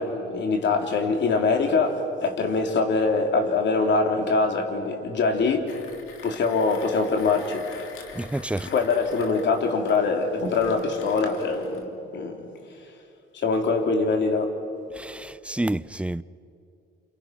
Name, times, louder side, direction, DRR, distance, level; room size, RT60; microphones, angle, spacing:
voice 1, 0.0-5.8 6.2-7.7 8.6-13.0 13.3-14.6, left 4 dB, 65° left, 3.5 m, -24 dB
Mechanisms, 5.7-11.9, left 5 dB, 90° left, 2.5 m, -45 dB
voice 2, 8.1-8.7 14.9-16.2, right 1 dB, 5° right, 0.6 m, -29 dB
29.5 x 29.0 x 6.1 m
cardioid pair, 90°, 20 cm